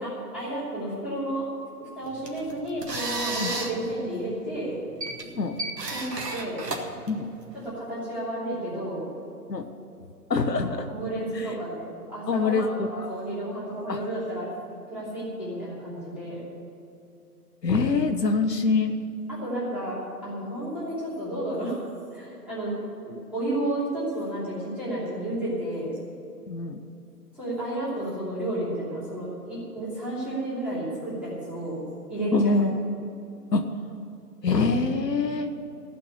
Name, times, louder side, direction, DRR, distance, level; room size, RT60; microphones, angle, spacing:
voice 1, 0.0-1.5 1.8-4.7 5.9-6.6 7.5-9.0 10.4-14.5 14.9-16.4 19.4-21.8 22.1-22.7 23.3-25.9 27.3-31.8 32.1-32.6, right 1 dB, 5° right, -11 dB, 3.0 m, -32 dB
sound 1, 2.0-7.7, right 2 dB, 85° right, 2.0 m, -34 dB
voice 2, 5.2-5.6 7.1-7.3 9.5-9.7 10.3-10.9 11.3-11.5 12.3-13.1 13.9-14.0 17.6-19.0 26.5-26.8 32.3-32.8 33.5-33.7 34.4-35.5, left 3 dB, 90° left, 6 dB, 1.3 m, -24 dB
15.0 x 6.0 x 9.8 m, 2.6 s
figure-of-eight pair, 155°, 48 cm